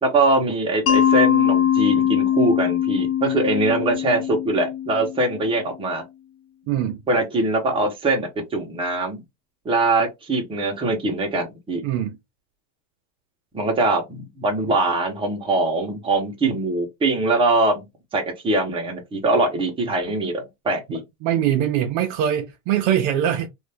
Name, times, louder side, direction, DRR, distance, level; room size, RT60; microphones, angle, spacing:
voice 1, 0.0-6.0 7.1-9.2 9.6-11.8 13.5-17.8 18.1-21.0, right 2 dB, 15° right, 0.9 m, -22 dB
Mallet percussion, 0.9-5.6, left 9 dB, 35° left, 0.4 m, -21 dB
voice 2, 6.7-7.0 11.8-12.2 21.2-23.5, right 10 dB, 50° right, 0.6 m, -22 dB
2.6 x 2.6 x 3.3 m
supercardioid pair, 155°, 40 cm